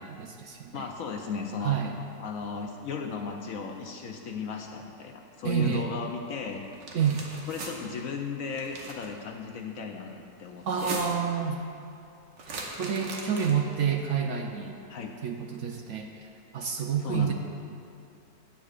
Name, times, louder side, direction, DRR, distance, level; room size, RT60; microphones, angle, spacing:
voice 1, 0.0-0.9 1.6-2.0 5.4-5.9 6.9-7.2 10.7-11.6 12.8-14.8 15.2-16.3 16.5-17.3, right 7 dB, 70° right, 3 dB, 0.7 m, -29 dB
voice 2, 0.7-1.8 2.2-6.6 7.5-11.0 14.9-15.1 17.0-17.3, left 5 dB, 65° left, 3 dB, 0.8 m, -36 dB
sound 1, 6.7-7.7 8.5-9.1 10.6-11.3 12.4-13.7, right 3 dB, 85° right, 1.8 m, -39 dB
16.0 x 8.5 x 2.4 m, 2.6 s
omnidirectional pair, 1.9 m